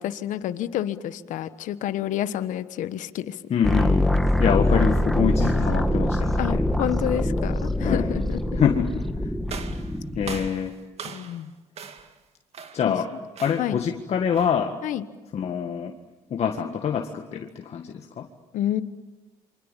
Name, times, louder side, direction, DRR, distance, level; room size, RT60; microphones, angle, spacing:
voice 1, 0.0-3.4 6.4-8.4 11.1-11.5 12.9-13.0 13.6-13.8 14.8-15.0 18.5-18.8, left 12 dB, 75° left, 12 dB, 1.3 m, -29 dB
voice 2, 3.5-4.1 4.4-6.6 7.8-8.1 8.5-9.0 10.1-10.8 12.7-13.1 13.4-14.7 15.3-15.9 16.3-18.3, left 7 dB, 55° left, 3 dB, 1.8 m, -25 dB
sound 1, 3.6-10.5, left 1 dB, ahead, 2.0 m, -24 dB
sound 2, 9.5-11.5 11.8-12.2 12.5-12.9 13.4-13.8 14.3-14.7, right 6 dB, 50° right, 2.4 m, -40 dB
28.0 x 25.0 x 7.4 m, 1.1 s
supercardioid pair, 80°, 13 cm